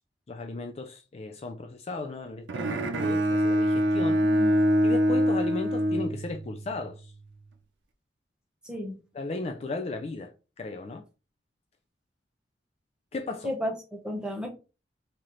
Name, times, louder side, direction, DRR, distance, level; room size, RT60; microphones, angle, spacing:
voice 1, 0.3-4.2 4.8-7.1 9.1-11.1 13.1-13.5, left 3 dB, 35° left, 0.3 m, -35 dB
Bowed string instrument, 2.5-6.7, equal, 85° right, 0.6 m, -24 dB
voice 2, 4.2-4.6 8.6-9.0 13.4-14.5, left 1 dB, 5° right, 0.9 m, -33 dB
3.1 x 2.9 x 3.8 m
head